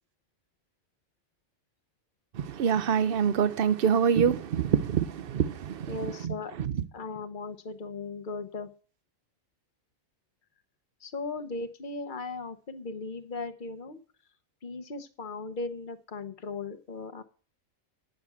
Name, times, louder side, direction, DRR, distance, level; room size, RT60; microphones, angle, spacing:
voice 1, 2.4-6.0 6.2-6.3, right 7 dB, 55° right, 0.7 m, -25 dB
voice 2, 5.9-6.5 6.9-8.7 11.0-14.0 14.6-17.2, left 3 dB, 40° left, 1.0 m, -37 dB
9.4 x 6.6 x 8.4 m
omnidirectional pair, 1.4 m